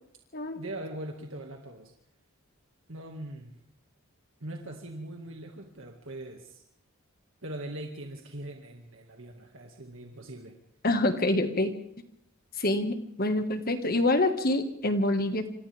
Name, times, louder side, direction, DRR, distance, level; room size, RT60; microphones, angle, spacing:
voice 1, 0.6-1.9 2.9-3.5 4.4-6.6 7.4-10.6, right 1 dB, 65° right, 2 dB, 2.1 m, -41 dB
voice 2, 10.8-11.7 12.6-15.5, left 1 dB, 45° left, 7 dB, 1.9 m, -26 dB
28.0 x 26.5 x 3.6 m, 0.75 s
head